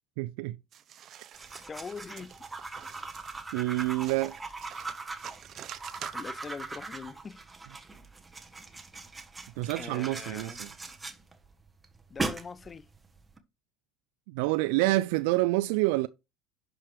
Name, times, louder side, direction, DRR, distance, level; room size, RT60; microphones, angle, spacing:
voice 1, 0.2-0.6 3.5-4.4 9.6-10.7 14.3-16.1, right 19 dB, 70° right, 0.3 m, -27 dB
sound 1, 0.7-6.6, right 10 dB, 45° right, 0.7 m, -47 dB
sound 2, 1.3-13.4, right 3 dB, 15° right, 1.2 m, -40 dB
voice 2, 1.7-2.4 6.1-7.4 9.8-10.6 12.1-12.9, left 5 dB, 30° left, 0.4 m, -42 dB
11.0 x 4.8 x 3.3 m
hypercardioid pair, 70°, 0 cm